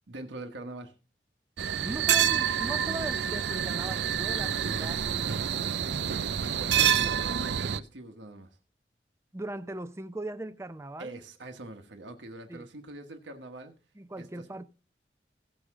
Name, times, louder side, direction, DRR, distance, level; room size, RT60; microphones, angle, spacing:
voice 1, 0.1-0.9 6.4-8.6 11.0-13.7 14.2-14.5, right 2 dB, 85° right, 1.2 m, -43 dB
sound 1, 1.6-7.8, right 8 dB, 70° right, 0.5 m, -27 dB
voice 2, 1.8-5.8 9.3-11.1 12.5-12.7 14.0-14.6, right 1 dB, 15° right, 0.6 m, -39 dB
16.5 x 6.4 x 3.6 m
head